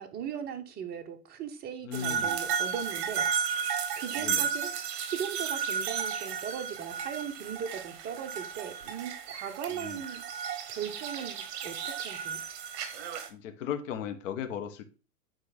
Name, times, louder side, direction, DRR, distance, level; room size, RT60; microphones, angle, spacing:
voice 1, 0.0-10.2 10.7-12.4, right 8 dB, 20° right, 1.0 m, -38 dB
voice 2, 1.8-2.4 4.2-4.5 9.7-10.0 13.3-14.8, left 8 dB, 50° left, 1.4 m, -36 dB
sound 1, 1.9-13.3, right 7 dB, 40° right, 1.6 m, -33 dB
8.8 x 4.6 x 4.0 m
hypercardioid pair, 130°, 48 cm